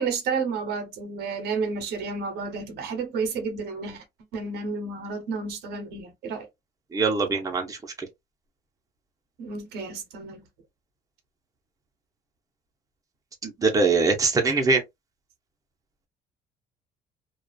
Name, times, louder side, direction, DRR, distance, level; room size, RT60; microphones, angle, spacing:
voice 1, 0.0-4.0 4.3-6.5 9.4-10.5, right 4 dB, 75° right, 0.8 m, -31 dB
voice 2, 6.9-7.8 13.4-14.8, right 4 dB, 20° right, 0.8 m, -22 dB
2.4 x 2.4 x 2.3 m
cardioid pair, 110°, 17 cm